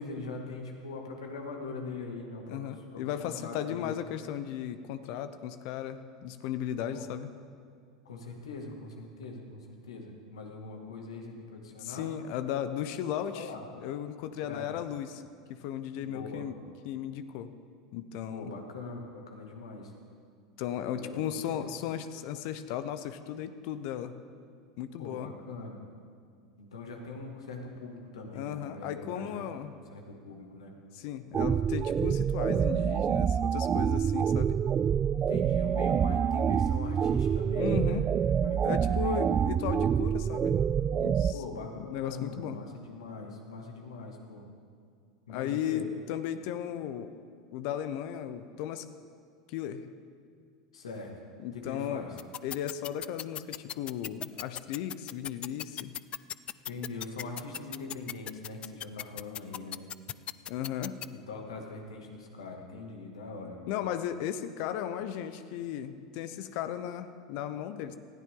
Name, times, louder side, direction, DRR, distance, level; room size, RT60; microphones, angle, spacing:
voice 1, 0.0-3.9 6.9-7.1 8.1-12.1 13.3-13.7 14.4-14.7 16.0-16.5 18.3-19.9 20.9-21.7 25.0-25.8 26.6-30.7 35.1-38.0 38.4-39.4 41.3-44.5 45.3-45.8 50.7-51.1 51.5-52.1 56.7-59.8 61.3-63.6, left 3 dB, 85° left, 1 dB, 2.3 m, -42 dB
voice 2, 2.5-7.3 11.8-13.5 13.8-15.2 15.5-16.6 16.8-17.5 17.9-18.5 20.6-24.1 24.8-25.3 28.3-29.7 30.9-34.6 37.6-38.1 38.3-40.6 40.9-41.4 41.8-42.6 45.3-47.1 47.5-48.9 49.5-49.9 51.4-52.0 52.4-55.9 60.5-61.0 63.7-68.0, left 10 dB, 60° left, 11 dB, 0.8 m, -36 dB
sound 1, 31.3-41.3, right 8 dB, 30° right, 0.4 m, -27 dB
sound 2, 52.2-61.1, left 11 dB, 35° left, 0.4 m, -37 dB
20.0 x 13.5 x 3.8 m, 2.2 s
hypercardioid pair, 90°, 3 cm